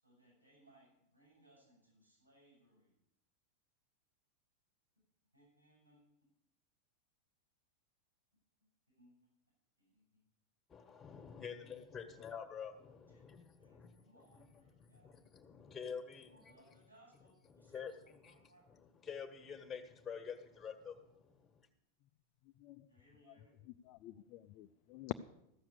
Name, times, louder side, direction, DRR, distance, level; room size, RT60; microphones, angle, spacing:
voice 1, 0.0-3.0 5.3-6.0 8.9-9.1 9.8-10.2 11.5-11.7 12.1-12.2 13.1-15.2 15.8-15.9 16.3-18.7 22.9-23.5, right 1 dB, 85° right, 7.0 m, -68 dB
voice 2, 10.7-16.6 17.5-21.7, left 6 dB, 15° left, 1.6 m, -49 dB
voice 3, 22.6-22.9 23.3-23.4 23.8-25.1, left 16 dB, 40° left, 0.4 m, -46 dB
14.0 x 7.1 x 8.3 m
figure-of-eight pair, 90°, 0 cm